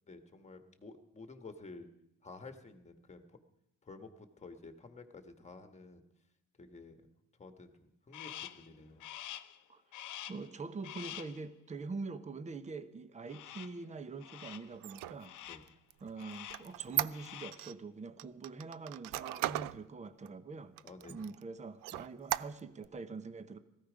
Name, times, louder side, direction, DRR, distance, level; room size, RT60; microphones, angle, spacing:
voice 1, 0.1-1.9 2.2-3.4 3.8-6.0 6.6-7.1 7.4-9.0 15.5-15.6 20.8-21.2, left 3 dB, 20° left, 7 dB, 1.5 m, -51 dB
Crow, 8.1-8.7 9.0-9.6 9.9-10.5 10.8-11.4 13.3-13.8 14.2-14.7 15.2-15.7 16.2-16.7 17.0-17.7, left 12 dB, 60° left, 0.8 m, -47 dB
voice 2, 10.3-15.4 16.0-20.8 21.1-23.6, right 4 dB, 20° right, 11 dB, 0.9 m, -44 dB
Squeak, 14.7-17.7 18.2-19.8 20.3-20.4 20.8-21.4 21.8-22.9, right 16 dB, 75° right, 0.5 m, -37 dB
17.5 x 15.0 x 5.1 m, 0.84 s
cardioid pair, 115°, 33 cm